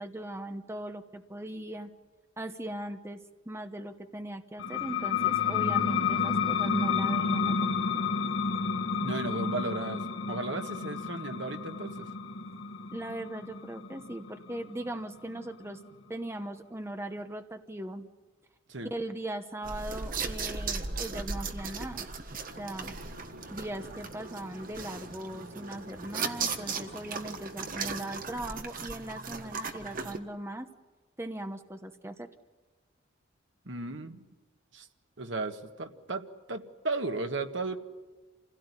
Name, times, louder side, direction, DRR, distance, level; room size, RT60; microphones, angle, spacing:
voice 1, 0.0-1.9 2.4-3.2 3.5-7.7 12.9-15.8 16.1-18.1 18.9-22.1 22.6-22.9 23.5-30.7 31.2-32.3, right 1 dB, 15° right, 7 dB, 1.0 m, -39 dB
sound 1, 4.6-15.9, left 6 dB, 85° left, 1.3 m, -31 dB
voice 2, 9.0-12.1 18.7-18.9 33.6-34.2 34.7-34.9 35.2-37.8, right 3 dB, 70° right, 6 dB, 1.7 m, -35 dB
sound 2, 19.6-30.2, right 4 dB, 45° right, 1.6 m, -37 dB
sound 3, 22.5-28.5, equal, 90° right, 4.1 m, -49 dB
27.5 x 16.5 x 9.8 m, 1.3 s
head